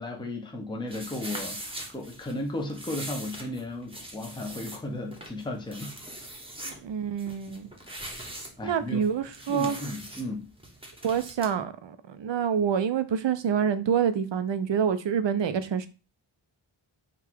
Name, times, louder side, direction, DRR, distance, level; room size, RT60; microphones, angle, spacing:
voice 1, 0.0-5.9 8.6-9.0 9.5-10.5, left 1 dB, 10° left, 0.7 m, -35 dB
sound 1, 0.9-11.5, right 1 dB, 10° right, 0.9 m, -42 dB
voice 2, 6.6-7.7 8.6-9.8 11.0-15.9, right 7 dB, 60° right, 0.6 m, -27 dB
3.8 x 2.4 x 4.4 m
wide cardioid pair, 85°, 49 cm